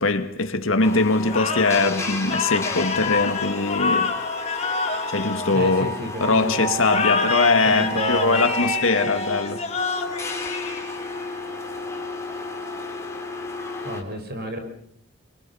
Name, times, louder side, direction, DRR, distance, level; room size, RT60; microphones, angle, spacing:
voice 1, 0.0-4.1 5.1-5.9 6.2-9.6, left 3 dB, 80° left, 2.0 m, -21 dB
sound 1, 0.8-14.0, left 1 dB, 15° left, 4.0 m, -32 dB
sound 2, 1.3-6.1 6.8-11.2, left 5 dB, 35° left, 4.3 m, -28 dB
voice 2, 5.5-6.7 7.6-8.5 13.8-14.6, right 1 dB, 55° right, 5.2 m, -30 dB
28.0 x 25.0 x 5.7 m
head